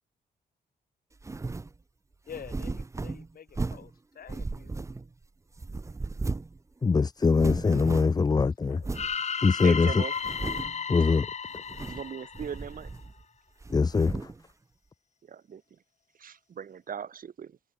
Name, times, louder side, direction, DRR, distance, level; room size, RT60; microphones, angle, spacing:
sound 1, 1.2-1.7 2.3-3.9 4.3-5.2 5.6-6.6 6.8-6.9 7.2-8.3 8.8-9.1 9.6-9.7 10.2-10.8 11.6-12.1 12.3-13.2 13.6-14.4, right 3 dB, 20° right, 0.8 m, -36 dB
voice 1, 2.3-4.9 7.5-7.9 8.4-8.9, left 8 dB, 70° left, 7.0 m, -48 dB
voice 2, 6.8-8.8 9.4-10.0 10.9-11.3 13.7-14.3, left 4 dB, 25° left, 0.6 m, -23 dB
sound 2, 8.9-13.0, left 6 dB, 45° left, 2.0 m, -34 dB
voice 3, 9.6-10.1 11.9-12.9 15.3-15.6 16.2-17.6, right 7 dB, 60° right, 5.9 m, -38 dB
wide cardioid pair, 120°, 16 cm